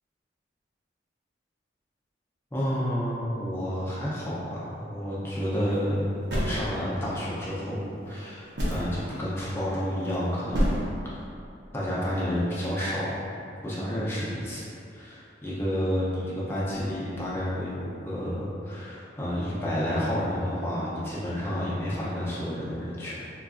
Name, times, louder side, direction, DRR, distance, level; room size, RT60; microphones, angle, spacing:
voice 1, 2.5-10.8 11.1-11.2 11.7-13.3 13.6-14.6 14.9-23.3, equal, 10° left, -8 dB, 0.5 m, -30 dB
sound 1, 5.5-5.8 6.3-7.2 8.1-8.2 8.5-9.0 9.8-10.2 10.5-10.8, equal, 65° right, 0.7 m, -27 dB
3.7 x 2.4 x 2.4 m, 2.6 s
head